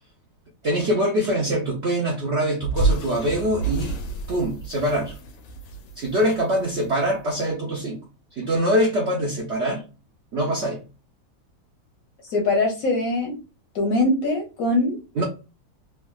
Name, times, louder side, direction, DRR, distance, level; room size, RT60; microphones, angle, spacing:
voice 1, 0.6-3.9 4.3-5.2 6.0-8.0 8.4-9.8 10.3-10.8 15.2-15.3, equal, 80° right, 0.6 m, -23 dB
sound 1, 2.6-7.0, right 3 dB, 90° left, 1.4 m, -28 dB
voice 2, 12.3-13.4 13.7-15.0, left 2 dB, 65° left, 0.9 m, -22 dB
3.3 x 2.2 x 2.2 m
omnidirectional pair, 2.0 m